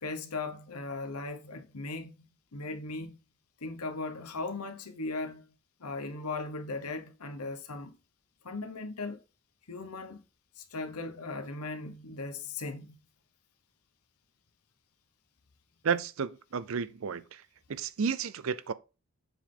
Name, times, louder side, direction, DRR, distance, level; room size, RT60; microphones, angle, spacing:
voice 1, 0.0-2.2 2.5-3.2 3.6-5.5 5.8-8.0 8.4-9.2 9.7-10.2 10.6-13.0, left 3 dB, 90° left, 1.1 m, -38 dB
voice 2, 15.8-17.4 17.7-18.7, right 6 dB, 65° right, 0.5 m, -32 dB
7.2 x 3.8 x 3.8 m
head